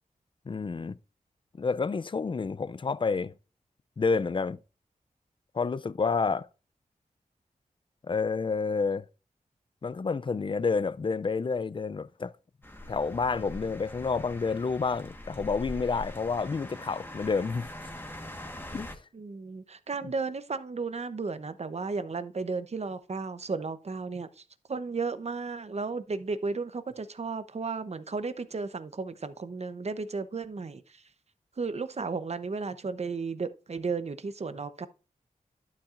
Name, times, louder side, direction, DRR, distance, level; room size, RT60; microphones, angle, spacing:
voice 1, 0.5-1.0 1.6-3.3 4.0-4.6 5.5-6.5 8.1-9.1 9.8-12.3 12.9-17.7 18.7-18.9, left 4 dB, 35° left, 0.4 m, -29 dB
sound 1, 12.6-18.9, left 1 dB, 15° left, 1.4 m, -43 dB
voice 2, 19.1-24.4 24.7-31.0 31.6-34.9, right 4 dB, 50° right, 0.8 m, -34 dB
11.5 x 7.3 x 2.5 m
wide cardioid pair, 70°, 14 cm